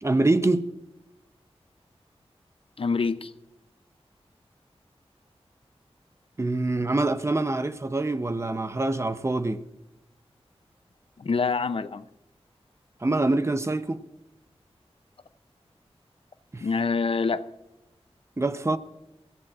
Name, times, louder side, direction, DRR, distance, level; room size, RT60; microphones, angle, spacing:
voice 1, 0.0-0.7 6.4-9.6 13.0-14.0 16.5-16.6 18.4-18.8, right 2 dB, 25° right, 0.7 m, -25 dB
voice 2, 2.8-3.3 11.2-12.0 16.6-17.4, left 4 dB, 60° left, 0.6 m, -26 dB
21.5 x 15.0 x 2.4 m
wide cardioid pair, 65°, 11 cm